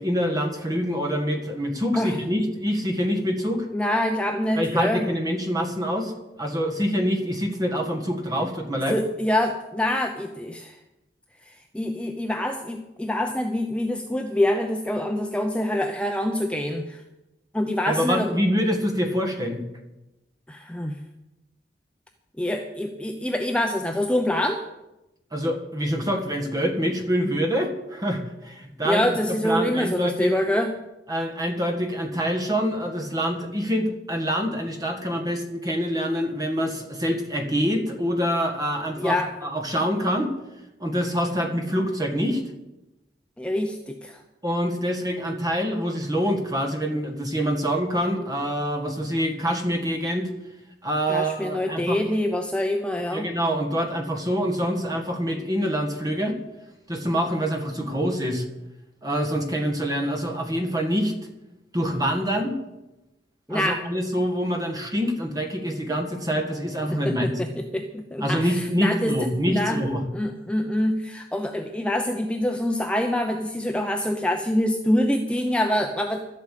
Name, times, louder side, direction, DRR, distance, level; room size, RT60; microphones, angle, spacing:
voice 1, 0.0-3.7 4.5-6.1 6.4-9.0 17.9-19.6 25.3-30.3 31.1-40.3 40.8-42.4 44.4-50.3 50.8-52.0 53.1-56.4 56.9-58.4 59.0-61.1 61.7-62.6 63.5-67.4 68.2-70.0, equal, 20° right, 4 dB, 1.6 m, -25 dB
voice 2, 3.7-5.1 8.9-10.7 11.7-17.0 17.5-18.3 20.5-21.0 22.4-24.6 28.8-30.7 39.0-39.3 43.4-44.2 51.1-53.3 63.5-63.8 66.9-69.2 69.5-69.8 70.1-76.2, left 1 dB, 5° left, 4 dB, 0.6 m, -25 dB
12.0 x 8.4 x 8.4 m, 0.98 s
head